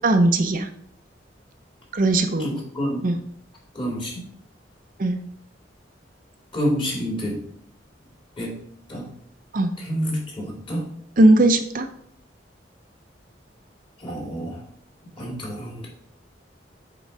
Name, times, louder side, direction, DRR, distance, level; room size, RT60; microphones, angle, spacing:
voice 1, 0.0-0.7 1.9-2.5 3.0-3.2 5.0-5.2 9.5-9.7 11.2-11.9, right 2 dB, 45° right, 7 dB, 0.6 m, -18 dB
voice 2, 2.4-3.1 3.7-4.3 6.5-7.5 8.4-8.6 8.9-9.1 9.8-11.0 14.0-14.6 15.2-15.9, equal, 30° left, -2 dB, 2.6 m, -28 dB
8.0 x 3.8 x 5.4 m, 0.65 s
head